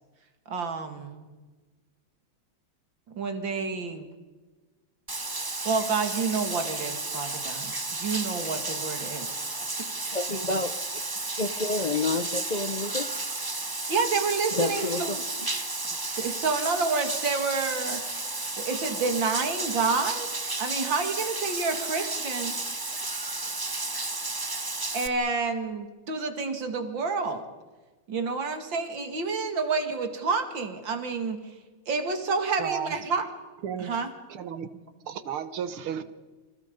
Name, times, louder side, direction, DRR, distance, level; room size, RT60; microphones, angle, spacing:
voice 1, 0.5-1.3 3.2-4.1 5.4-7.7 8.0-9.4 13.9-15.2 16.2-18.0 18.6-20.3 20.6-22.6 24.9-27.5 28.1-31.5 31.9-33.2 33.8-34.1 34.8-34.9, right 4 dB, 65° right, 7 dB, 2.9 m, -29 dB
Bathtub (filling or washing), 5.1-25.1, right 2 dB, 30° right, 0.4 m, -32 dB
voice 2, 10.1-10.7 11.4-13.1 14.5-15.2, left 3 dB, 45° left, 8 dB, 0.5 m, -29 dB
voice 3, 32.6-32.9 33.6-33.9 34.3-34.7 35.1-36.0, right 8 dB, 85° right, 12 dB, 2.1 m, -33 dB
29.0 x 25.5 x 5.3 m, 1.3 s
omnidirectional pair, 2.3 m